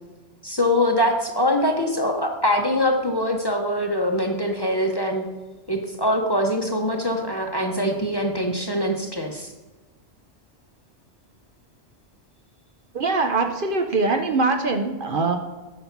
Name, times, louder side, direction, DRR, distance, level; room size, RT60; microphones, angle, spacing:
voice 1, 0.4-5.3 5.7-9.5, left 1 dB, 25° left, 2 dB, 0.9 m, -23 dB
voice 2, 12.9-15.4, right 3 dB, 55° right, 6 dB, 0.8 m, -22 dB
9.3 x 5.6 x 5.9 m, 1.2 s
omnidirectional pair, 1.2 m